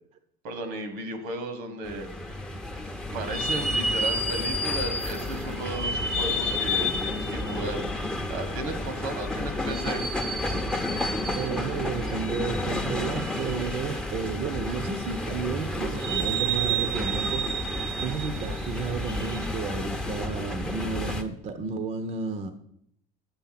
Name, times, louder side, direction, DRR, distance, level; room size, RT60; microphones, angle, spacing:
voice 1, 0.4-2.3 3.1-10.1, right 2 dB, 80° right, 9 dB, 1.6 m, -35 dB
sound 1, 1.8-21.2, equal, 5° left, 0.8 m, -30 dB
voice 2, 10.9-17.7 18.0-22.5, right 5 dB, 40° right, 9 dB, 0.8 m, -32 dB
8.2 x 7.1 x 5.8 m, 0.71 s
cardioid pair, 130°, 17 cm